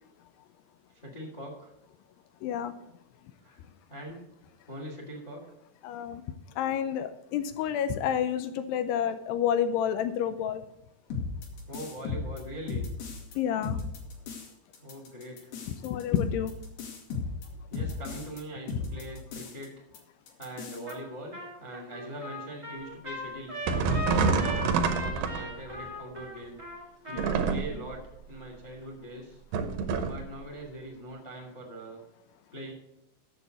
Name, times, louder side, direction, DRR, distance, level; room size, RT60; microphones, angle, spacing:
voice 1, 0.9-1.7 3.4-3.6 3.9-4.2 4.7-5.4 11.7-12.9 14.8-15.5 17.7-19.8 20.4-24.6 25.0-26.6 27.1-28.0 28.3-29.4 30.0-32.0 32.5-32.7, right 1 dB, 20° left, 1 dB, 1.0 m, -42 dB
voice 2, 2.4-2.8 5.8-6.2 6.6-10.6 13.4-13.8 15.7-16.5 27.1-27.6, left 9 dB, 80° left, 11 dB, 2.4 m, -29 dB
sound 1, 11.1-13.3 13.6-14.5 14.7-18.4 18.7-19.7 19.9-20.0 20.3-20.9, left 4 dB, 60° left, 3.5 m, -35 dB
Trumpet, 20.9-21.1 21.3-27.5, equal, 15° right, 1.5 m, -38 dB
sound 2, 23.7-25.8 27.1-27.9 29.5-30.3, right 5 dB, 75° right, 2.1 m, -27 dB
8.2 x 7.5 x 8.1 m, 0.80 s
omnidirectional pair, 5.3 m